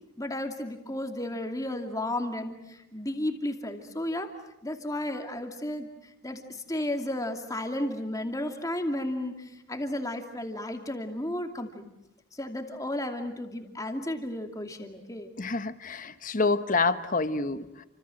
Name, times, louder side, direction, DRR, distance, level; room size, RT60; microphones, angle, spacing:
voice 1, 0.2-4.3 4.6-11.8 12.3-15.3, left 1 dB, 15° left, 5 dB, 2.6 m, -33 dB
voice 2, 15.4-17.9, left 3 dB, 40° left, 11 dB, 1.2 m, -27 dB
29.5 x 26.0 x 7.8 m, 0.88 s
head